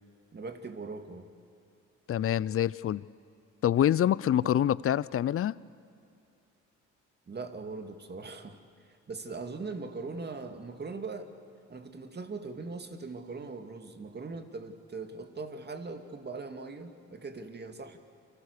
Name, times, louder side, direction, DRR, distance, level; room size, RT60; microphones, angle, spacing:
voice 1, 0.3-1.3 7.3-8.6 8.9-11.3 11.7-18.0, right 3 dB, 35° right, 2.3 m, -40 dB
voice 2, 2.1-3.0 3.6-5.6, left 11 dB, 45° left, 0.6 m, -26 dB
29.5 x 25.5 x 6.7 m
cardioid pair, 90°, 30 cm